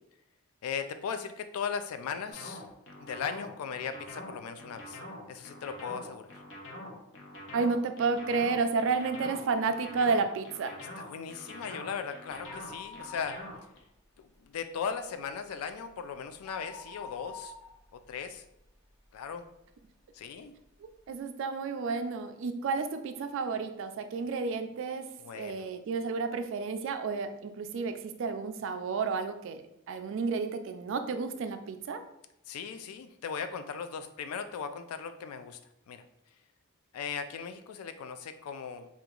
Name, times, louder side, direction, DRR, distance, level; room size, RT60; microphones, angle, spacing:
voice 1, 0.6-2.7 3.0-5.0 5.3-6.3 11.0-13.4 14.2-17.5 17.9-18.4 19.1-19.4 20.1-20.5 25.2-25.7 32.5-35.6 35.9-36.0 36.9-38.9, left 6 dB, 80° left, 10 dB, 0.3 m, -38 dB
sound 1, 2.3-13.8, left 1 dB, 60° left, 0.7 m, -45 dB
voice 2, 7.5-10.7 21.1-25.0 25.3-29.6 29.9-32.0, right 4 dB, 60° right, 8 dB, 0.3 m, -31 dB
sound 2, 12.4-13.9 14.3-14.4 14.8-19.2 19.7-19.8 20.6-20.7 20.9-21.0, left 4 dB, 15° left, 0.5 m, -48 dB
2.8 x 2.4 x 3.7 m, 0.82 s
head